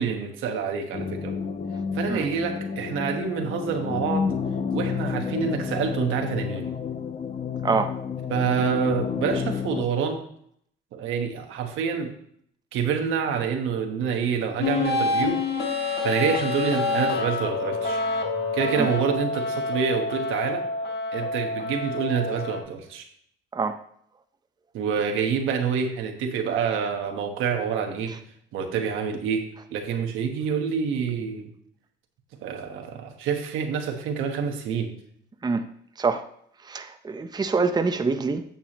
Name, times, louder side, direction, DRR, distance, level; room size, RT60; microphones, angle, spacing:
voice 1, 0.0-1.3 1.9-4.3 4.7-6.7 8.3-10.2 10.9-12.1 12.7-15.4 16.0-18.0 18.5-20.6 21.1-23.1 24.7-28.2 28.5-31.5 32.4-34.9, right 6 dB, 90° right, 1.2 m, -27 dB
sound 1, 0.9-9.8, left 6 dB, 35° left, 0.6 m, -30 dB
voice 2, 7.6-7.9 18.8-18.9 23.5-23.8 35.4-35.7 36.0-36.2 36.7-38.4, right 4 dB, 20° right, 0.6 m, -25 dB
sound 2, 14.6-22.6, left 3 dB, 55° left, 1.7 m, -27 dB
9.2 x 7.0 x 3.0 m
cardioid pair, 90°, 20 cm